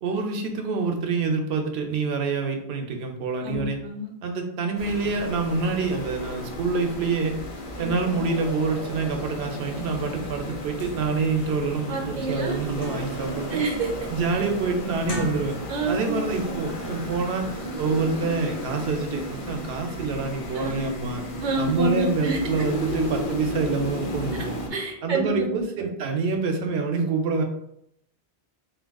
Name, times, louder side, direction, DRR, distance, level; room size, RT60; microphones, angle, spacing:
voice 1, 0.0-3.8 4.2-7.4 7.8-13.6 14.1-15.6 15.9-17.5 17.8-21.2 21.6-24.6 25.0-27.4, right 4 dB, 80° right, 3 dB, 0.8 m, -26 dB
voice 2, 3.4-4.1 7.8-8.3 11.9-12.6 13.5-13.9 15.7-16.6 20.5-20.9 21.4-22.4 24.7-25.5, right 2 dB, 55° right, 1 dB, 0.7 m, -28 dB
sound 1, 4.8-24.7, equal, 40° left, 0.5 m, -34 dB
sound 2, 10.8-11.0 11.5-11.6 12.0-13.3 13.7-14.1 14.9-15.9 16.3-16.5, left 1 dB, 60° left, 0.9 m, -37 dB
3.5 x 2.7 x 2.2 m, 0.76 s
omnidirectional pair, 1.1 m